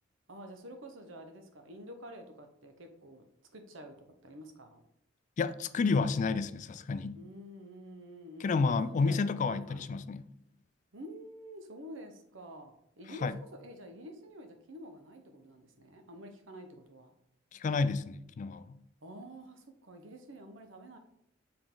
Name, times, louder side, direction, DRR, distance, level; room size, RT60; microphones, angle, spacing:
voice 1, 0.3-3.2 3.5-4.0 4.2-4.8 7.1-8.8 9.0-9.2 9.5-9.9 10.9-17.1 19.0-21.0, equal, 85° right, 0.9 m, -48 dB
voice 2, 5.4-7.2 8.4-10.3 13.2-13.4 17.5-18.8, left 4 dB, 40° left, 0.3 m, -30 dB
6.9 x 3.7 x 3.8 m
head